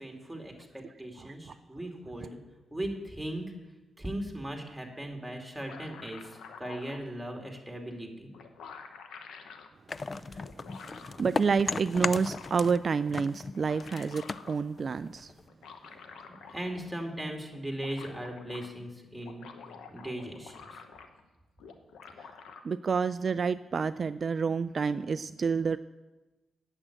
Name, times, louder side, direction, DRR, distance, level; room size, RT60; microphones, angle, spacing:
voice 1, 0.0-2.4 2.7-3.4 4.0-8.3 16.5-19.4 19.9-20.8, right 1 dB, 5° right, 1 dB, 2.8 m, -38 dB
sound 1, 5.3-7.0 8.0-8.1 8.3-9.7 10.4-11.2 11.7-12.7 13.4-14.6 15.5-16.9 17.2-17.3 17.5-18.7 19.1-21.3 21.6-22.6, left 5 dB, 85° left, 1.0 m, -49 dB
sound 2, 9.9-12.8 13.1-15.5, left 4 dB, 40° left, 0.3 m, -36 dB
voice 2, 10.1-10.4 10.7-15.3 22.2-22.3 22.6-25.8, right 5 dB, 55° right, 13 dB, 0.3 m, -29 dB
8.7 x 7.9 x 8.8 m, 1.1 s
supercardioid pair, 55°, 0 cm